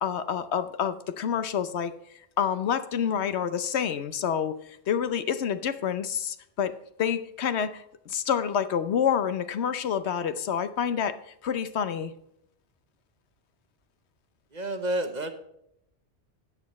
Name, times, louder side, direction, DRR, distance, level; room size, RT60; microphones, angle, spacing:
voice 1, 0.0-1.9 2.4-4.6 4.9-6.7 7.0-12.1, left 8 dB, 75° left, 12 dB, 1.0 m, -28 dB
voice 2, 14.5-15.3, right 1 dB, 40° right, 8 dB, 1.1 m, -29 dB
13.0 x 8.4 x 3.1 m, 0.77 s
omnidirectional pair, 1.2 m